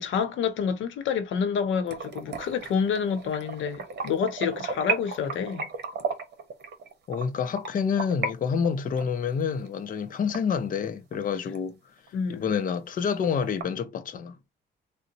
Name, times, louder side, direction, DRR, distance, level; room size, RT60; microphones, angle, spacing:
voice 1, 0.0-5.7 12.1-12.5, left 6 dB, 75° left, 0.8 m, -28 dB
sound 1, 1.9-8.3 8.6-11.2 11.5-11.6 12.1-12.2 12.5-12.6 12.9-13.6, right 5 dB, 60° right, 1.0 m, -34 dB
voice 2, 7.1-11.8 12.3-14.4, left 6 dB, 45° left, 0.5 m, -28 dB
3.8 x 2.1 x 2.7 m
cardioid pair, 90°, 20 cm